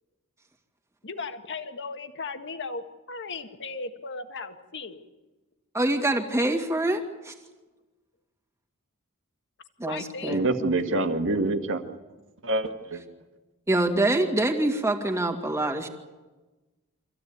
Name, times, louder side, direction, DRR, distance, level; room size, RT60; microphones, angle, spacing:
voice 1, 1.0-5.0 9.8-10.4, left 4 dB, 55° left, 7 dB, 1.7 m, -36 dB
voice 2, 5.7-7.3 9.8-10.4 13.7-15.9, right 1 dB, 15° right, 2 dB, 2.3 m, -25 dB
voice 3, 10.3-11.9 12.4-13.0, right 2 dB, 60° right, 6 dB, 1.8 m, -26 dB
25.5 x 15.0 x 9.4 m, 1.2 s
head